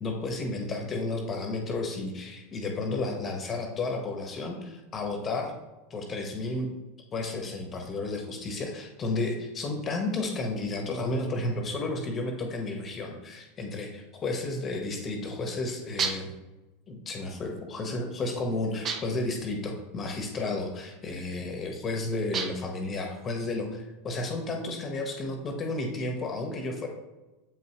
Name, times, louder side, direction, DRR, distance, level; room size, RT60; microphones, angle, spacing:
voice 1, 0.0-5.5 5.9-6.7 7.1-16.3 16.9-26.9, left 2 dB, 30° left, 2 dB, 1.1 m, -32 dB
sound 1, 16.0-16.4 18.8-19.3 22.3-22.8, right 5 dB, 35° right, 0.6 m, -32 dB
7.4 x 5.5 x 3.0 m, 1.1 s
hypercardioid pair, 110°, 0 cm